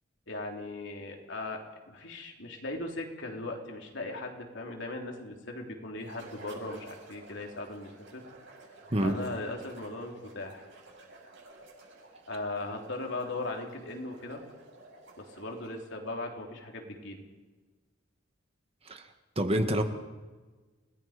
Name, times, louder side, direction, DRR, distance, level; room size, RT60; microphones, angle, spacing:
voice 1, 0.3-1.6 1.9-8.2 9.0-10.6 12.3-14.4 15.2-17.2, left 2 dB, 65° left, 2 dB, 3.6 m, -38 dB
sound 1, 6.0-15.9, right 2 dB, 65° right, 7.5 m, -52 dB
voice 2, 19.4-19.8, right 1 dB, 30° right, 6 dB, 1.8 m, -27 dB
30.0 x 19.0 x 5.2 m, 1.3 s
head